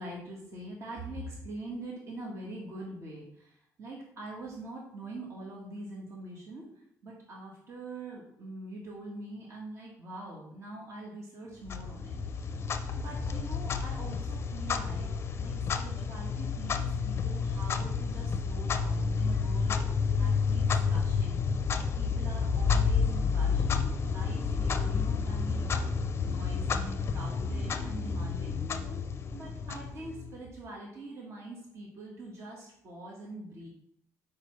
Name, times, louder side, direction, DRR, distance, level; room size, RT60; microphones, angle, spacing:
voice 1, 0.0-6.6 7.0-12.5 13.0-15.1 15.4-19.8 20.1-21.4 21.7-25.7 26.2-28.6 29.3-33.7, right 2 dB, 50° right, -2 dB, 1.5 m, -44 dB
Clock, 11.7-30.4, left 5 dB, 40° left, 0.5 m, -30 dB
6.6 x 4.9 x 3.2 m, 0.72 s
cardioid pair, 115°, 6 cm